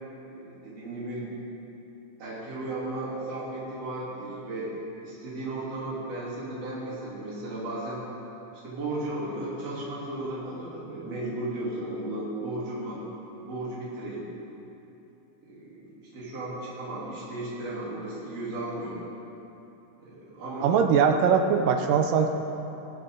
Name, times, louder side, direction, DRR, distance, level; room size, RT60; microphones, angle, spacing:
voice 1, 0.3-1.3 2.2-4.7 5.0-8.1 8.6-13.0 13.4-14.3 15.4-19.0 20.0-20.8, right 2 dB, 50° right, -9 dB, 4.4 m, -35 dB
voice 2, 20.6-22.3, right 6 dB, 90° right, 4 dB, 2.5 m, -21 dB
17.5 x 16.0 x 3.9 m, 3.0 s
omnidirectional pair, 3.7 m